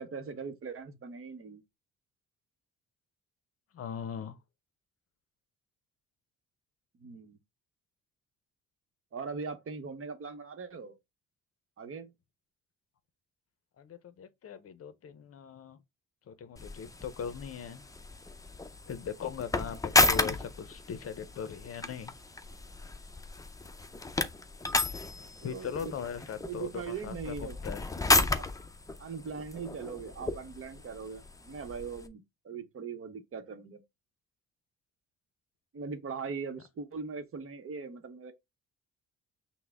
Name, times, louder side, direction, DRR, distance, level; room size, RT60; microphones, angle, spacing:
voice 1, 0.0-1.6 6.9-7.4 9.1-11.0 11.8-12.1 25.4-26.0 26.4-27.6 28.3-28.5 29.0-33.8 35.7-38.3, right 5 dB, 45° right, 0.9 m, -40 dB
voice 2, 3.7-4.4 13.8-15.8 16.3-17.8 18.9-22.1 25.1-27.9, left 7 dB, 50° left, 0.6 m, -40 dB
sound 1, 16.6-32.1, left 2 dB, 10° left, 0.5 m, -33 dB
5.8 x 2.1 x 3.5 m
cardioid pair, 90°, 30 cm